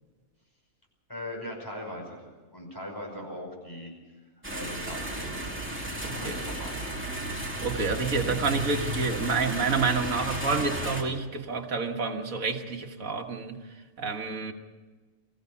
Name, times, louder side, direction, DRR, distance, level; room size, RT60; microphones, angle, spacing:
voice 1, 1.1-2.2 2.5-3.9 4.5-5.6 6.0-6.8, left 1 dB, 15° left, 0 dB, 5.5 m, -39 dB
sound 1, 4.4-11.0, right 1 dB, 10° right, 2.4 m, -34 dB
voice 2, 6.0-6.4 7.6-13.7 14.0-14.5, right 4 dB, 75° right, 4 dB, 2.0 m, -29 dB
24.5 x 15.0 x 7.1 m, 1.4 s
omnidirectional pair, 1.4 m